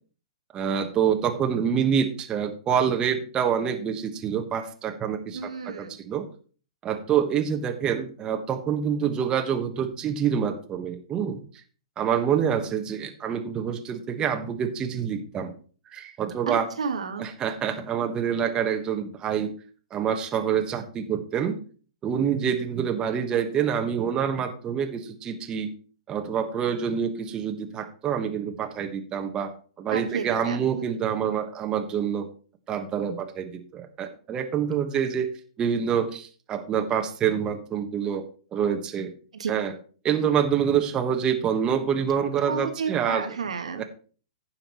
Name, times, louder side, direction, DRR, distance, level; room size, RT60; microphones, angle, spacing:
voice 1, 0.5-6.3 6.8-11.4 12.0-15.5 15.9-16.7 17.2-19.5 19.9-21.6 22.0-25.7 26.1-29.5 29.8-32.3 32.7-35.3 35.6-38.2 38.5-39.1 39.5-39.7 40.0-43.3 43.7-43.8, right 8 dB, 25° right, 5 dB, 1.3 m, -26 dB
voice 2, 5.3-6.0 16.5-17.3 29.9-30.9 39.3-39.5 42.5-43.9, right 5 dB, 75° right, 7 dB, 1.2 m, -32 dB
15.5 x 5.8 x 3.1 m, 0.40 s
hypercardioid pair, 115°, 4 cm